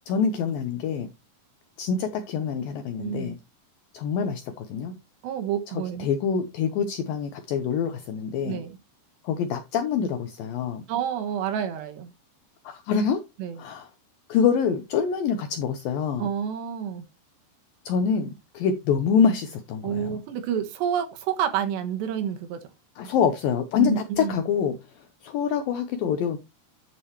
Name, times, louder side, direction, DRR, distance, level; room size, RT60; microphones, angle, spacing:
voice 1, 0.1-1.1 1.8-3.4 3.9-4.9 5.7-8.6 9.2-10.8 12.6-13.2 13.6-13.9 14.3-16.3 17.9-20.2 23.0-26.4, left 6 dB, 80° left, 2.1 m, -26 dB
voice 2, 3.0-3.4 5.2-6.1 8.4-8.7 10.9-12.1 13.4-13.6 16.2-17.1 19.8-22.6 23.8-24.4, right 9 dB, 75° right, 3.5 m, -29 dB
11.5 x 6.9 x 3.1 m
omnidirectional pair, 5.1 m